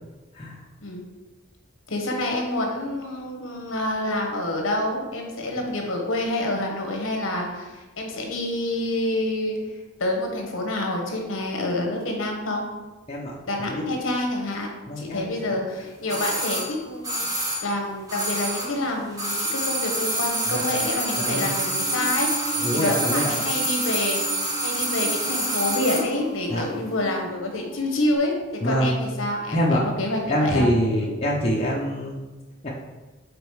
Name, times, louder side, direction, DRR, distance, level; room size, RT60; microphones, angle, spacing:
voice 1, 1.9-12.7 13.5-30.7 31.0-31.1, left 1 dB, 65° left, 1 dB, 1.1 m, -28 dB
voice 2, 14.9-15.6 20.5-20.6 21.2-21.6 22.6-23.3 26.5-26.6 28.6-29.0 29.5-29.8 30.3-32.2 32.6-32.7, equal, 30° left, -4 dB, 0.7 m, -25 dB
sound 1, 16.1-18.8 19.1-26.1 26.4-26.5, right 1 dB, 15° right, 0.9 m, -27 dB
Musical instrument, 21.3-28.2, right 2 dB, 85° right, 1.7 m, -38 dB
5.2 x 4.3 x 4.7 m, 1.2 s
head